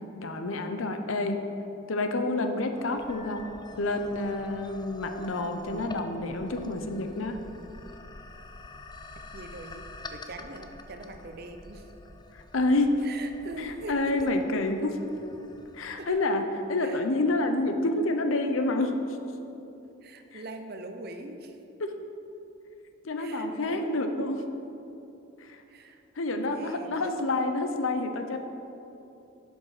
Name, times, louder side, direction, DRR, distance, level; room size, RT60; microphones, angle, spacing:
voice 1, 0.2-1.4 1.9-3.5 3.8-7.4 12.5-13.0 13.6-15.0 15.7-16.4 16.7-19.0 20.3-20.4 21.8-21.9 23.0-24.4 25.4-25.6 26.2-28.4, left 2 dB, 80° left, 6 dB, 0.7 m, -28 dB
sound 1, 2.7-16.1, left 2 dB, 20° left, 0.4 m, -46 dB
voice 2, 9.3-11.9 13.0-14.3 16.0-16.2 16.8-17.0 20.0-21.6 23.2-24.0 25.7-26.0 26.4-27.1, right 2 dB, 50° right, 6 dB, 0.6 m, -42 dB
11.0 x 5.4 x 4.8 m, 2.9 s
head